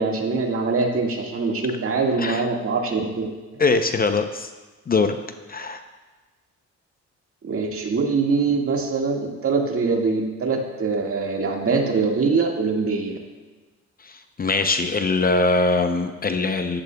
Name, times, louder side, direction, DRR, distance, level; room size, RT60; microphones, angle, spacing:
voice 1, 0.0-3.3 7.4-13.2, right 4 dB, 45° right, 1 dB, 1.8 m, -23 dB
voice 2, 3.6-4.5 4.9-5.2 5.5-5.8 14.0-16.8, left 3 dB, 30° left, 8 dB, 0.6 m, -22 dB
13.5 x 12.0 x 2.3 m, 1.3 s
cardioid pair, 90°, 30 cm